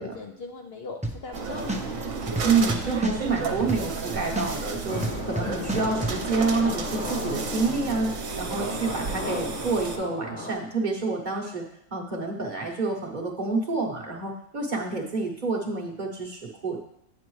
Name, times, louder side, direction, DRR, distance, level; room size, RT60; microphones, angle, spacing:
voice 1, 0.0-2.4, left 4 dB, 60° left, 3 dB, 0.7 m, -40 dB
sound 1, 1.0-1.4 1.7-4.1 4.4-6.2, right 1 dB, 10° right, 0.3 m, -29 dB
sound 2, 1.3-10.0, right 4 dB, 65° right, 1.1 m, -33 dB
voice 2, 2.4-11.7 11.9-16.8, right 4 dB, 40° right, 0 dB, 1.0 m, -28 dB
sound 3, 4.9-10.5, left 2 dB, 40° left, 1.3 m, -35 dB
8.4 x 7.6 x 3.1 m, 0.74 s
omnidirectional pair, 1.4 m